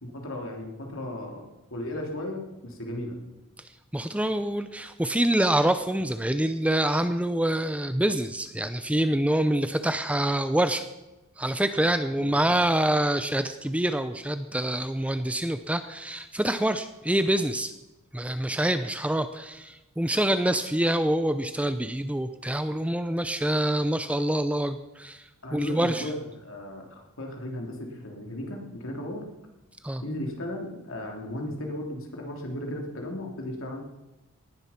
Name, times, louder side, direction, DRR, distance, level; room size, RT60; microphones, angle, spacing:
voice 1, 0.0-3.1 12.1-12.5 25.4-29.2 30.0-33.8, left 1 dB, 60° left, 1 dB, 3.3 m, -36 dB
voice 2, 3.9-10.9 11.4-17.7 18.1-25.2 25.5-26.1 29.8-30.0, right 1 dB, 5° right, 10 dB, 0.6 m, -26 dB
18.5 x 11.0 x 5.9 m, 1.0 s
head